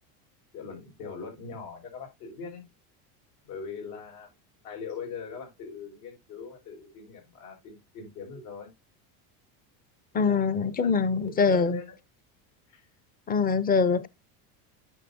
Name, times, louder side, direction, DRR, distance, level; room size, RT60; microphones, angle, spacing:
voice 1, 0.5-2.7 3.4-4.3 4.6-8.7 10.1-12.0 12.7-12.9, left 5 dB, 75° left, 5.5 m, -41 dB
voice 2, 10.1-11.8 13.3-14.1, left 5 dB, 20° left, 0.6 m, -24 dB
9.0 x 6.9 x 2.7 m
supercardioid pair, 130°, 41 cm